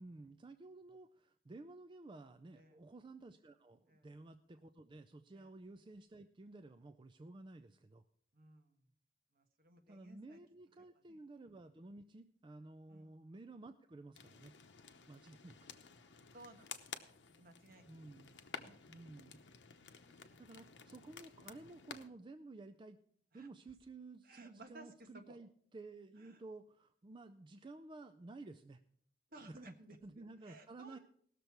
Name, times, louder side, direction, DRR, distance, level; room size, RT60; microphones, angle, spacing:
voice 1, 0.0-8.0 9.9-14.5 15.1-15.7 17.9-18.4 18.9-19.4 19.9-23.0 23.3-28.8 29.5-29.7 30.0-31.0, right 2 dB, 25° right, 8 dB, 0.4 m, -54 dB
voice 2, 8.3-8.9 9.3-10.4 12.9-13.1 16.3-16.8 17.3-18.1 18.6-18.7 23.3-23.5 24.2-25.4 26.2-26.4 29.3-31.0, right 2 dB, 55° right, 5 dB, 1.4 m, -59 dB
sound 1, 14.1-22.1, left 6 dB, 80° left, 0.9 m, -53 dB
18.0 x 6.7 x 4.5 m, 0.63 s
head